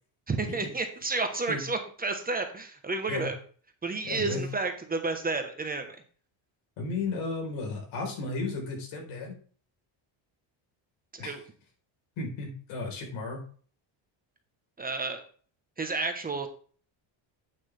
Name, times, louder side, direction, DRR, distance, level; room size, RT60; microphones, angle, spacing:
voice 1, 0.3-3.4 3.8-6.0 11.1-11.4 14.8-15.2 15.8-16.5, right 3 dB, 20° right, 5 dB, 1.2 m, -31 dB
voice 2, 4.0-4.4 6.8-9.3 11.2-11.3 12.2-13.4, left 3 dB, 80° left, 1 dB, 4.3 m, -34 dB
8.9 x 8.2 x 3.4 m, 0.43 s
cardioid pair, 150°, 47 cm